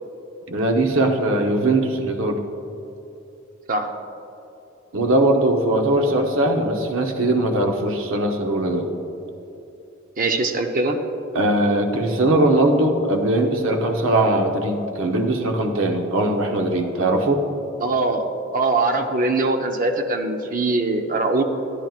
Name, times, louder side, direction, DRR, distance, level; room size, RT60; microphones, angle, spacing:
voice 1, 0.5-2.4 4.9-8.9 11.3-17.4, right 1 dB, 80° right, 3 dB, 0.8 m, -20 dB
voice 2, 10.2-11.0 17.8-18.2 18.5-21.4, right 3 dB, 40° right, 5 dB, 0.6 m, -22 dB
11.0 x 10.5 x 2.4 m, 2.9 s
head